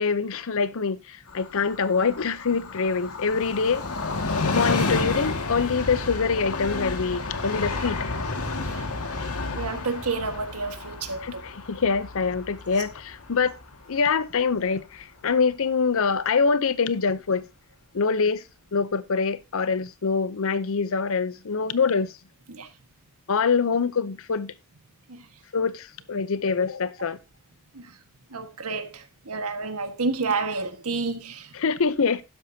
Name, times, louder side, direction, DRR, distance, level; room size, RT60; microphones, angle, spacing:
voice 1, 0.0-3.8 4.5-8.1 11.2-13.6 13.9-17.5 17.9-18.4 18.7-22.2 23.3-24.5 25.5-27.2 31.5-32.2, left 5 dB, 65° left, 0.7 m, -25 dB
Train, 1.3-14.6 14.9-15.0, left 3 dB, 85° left, 1.9 m, -31 dB
voice 2, 9.5-11.4 22.5-22.7 25.1-25.2 27.7-27.9 28.3-31.5, right 4 dB, 90° right, 1.6 m, -30 dB
12.0 x 10.0 x 2.8 m
head